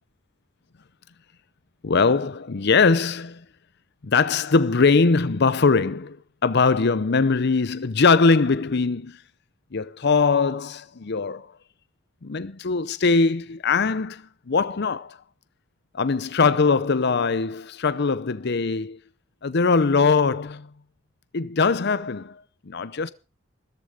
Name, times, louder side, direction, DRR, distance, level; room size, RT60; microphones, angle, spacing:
voice 1, 1.8-3.4 4.0-6.2 6.4-9.2 9.7-11.5 12.2-15.2 15.9-19.0 19.4-20.7 21.3-23.1, left 4 dB, 55° left, 0.7 m, -21 dB
14.0 x 13.5 x 5.0 m
head